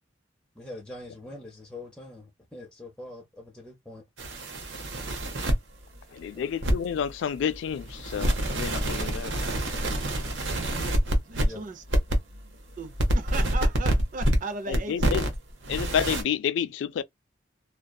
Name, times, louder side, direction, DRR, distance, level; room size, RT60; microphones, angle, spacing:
voice 1, 0.6-4.0 6.4-6.5 11.4-11.6, left 2 dB, 5° left, 0.6 m, -43 dB
sound 1, 4.2-5.5 6.6-7.0 7.4-11.5 11.9-12.4 12.7-14.4 14.7-15.4 15.6-16.2, right 1 dB, 75° right, 0.8 m, -26 dB
voice 2, 6.1-9.3 14.7-15.2 15.7-17.0, left 8 dB, 70° left, 0.3 m, -29 dB
voice 3, 11.3-11.8 12.8-15.1, right 3 dB, 45° right, 0.4 m, -36 dB
2.6 x 2.2 x 2.2 m
head